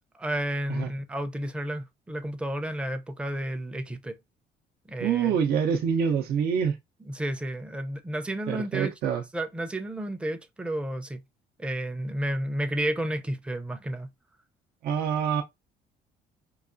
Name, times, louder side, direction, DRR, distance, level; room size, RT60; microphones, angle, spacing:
voice 1, 0.1-4.2 4.9-5.4 7.1-8.9 9.3-11.2 11.6-14.1, right 1 dB, 5° right, 0.5 m, -31 dB
voice 2, 5.0-6.8 8.5-9.2 14.8-15.4, right 7 dB, 65° right, 0.6 m, -26 dB
4.6 x 2.3 x 2.5 m
cardioid pair, 110°, 17 cm